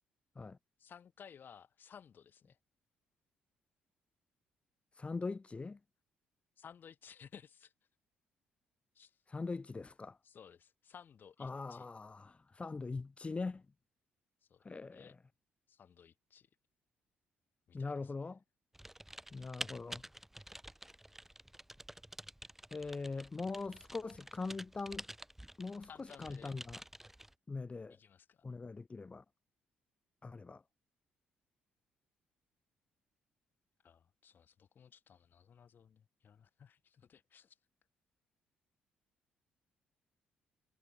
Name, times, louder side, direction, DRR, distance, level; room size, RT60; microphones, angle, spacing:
voice 1, 0.8-2.6 6.6-7.7 8.9-9.2 10.2-11.9 14.4-15.1 15.7-16.5 17.7-18.1 25.9-26.5 28.0-28.4 33.8-37.6, left 7 dB, 50° left, 1.8 m, -57 dB
voice 2, 5.0-5.8 9.3-10.2 11.4-13.7 14.6-15.2 17.7-18.4 19.3-20.0 22.7-25.0 25.6-26.8 27.5-28.0 28.4-29.2 30.2-30.6, left 3 dB, 30° left, 1.1 m, -42 dB
Typing, 18.7-27.3, right 1 dB, 5° right, 2.2 m, -50 dB
hypercardioid pair, 45°, 4 cm